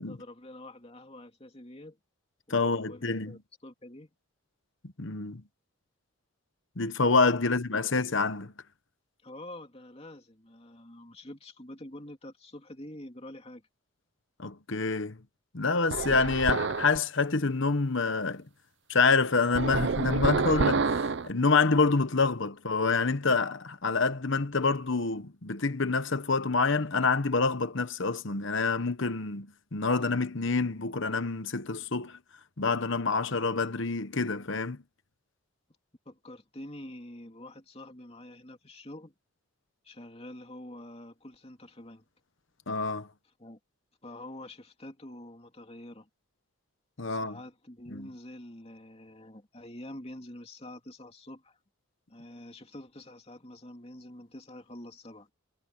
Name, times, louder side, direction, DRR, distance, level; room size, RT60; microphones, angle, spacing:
voice 1, 0.0-2.0 2.5-4.1 9.2-13.6 36.0-39.1 39.8-42.0 43.4-43.6 44.0-46.1 47.1-51.6 52.1-55.3, left 1 dB, 25° left, 2.8 m, -46 dB
voice 2, 2.5-3.4 4.8-5.4 6.8-8.5 14.4-15.2 15.5-18.4 18.9-32.2 32.6-34.8 42.7-43.1 47.0-47.4 47.9-48.1, left 4 dB, 55° left, 1.1 m, -27 dB
sound 1, 15.9-17.0 19.6-21.3, right 4 dB, 55° right, 0.5 m, -28 dB
head